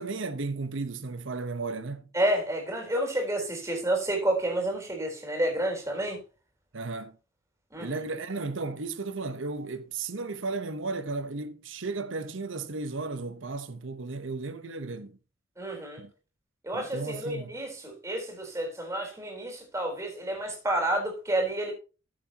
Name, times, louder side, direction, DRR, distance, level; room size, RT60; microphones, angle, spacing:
voice 1, 0.0-2.1 6.7-7.2 7.8-15.2 16.0-16.1 16.7-17.5, right 3 dB, 75° right, 0.9 m, -34 dB
voice 2, 2.1-6.2 7.7-8.0 15.6-16.0 16.6-21.7, right 1 dB, 15° right, 4.0 m, -30 dB
14.0 x 7.6 x 2.9 m
head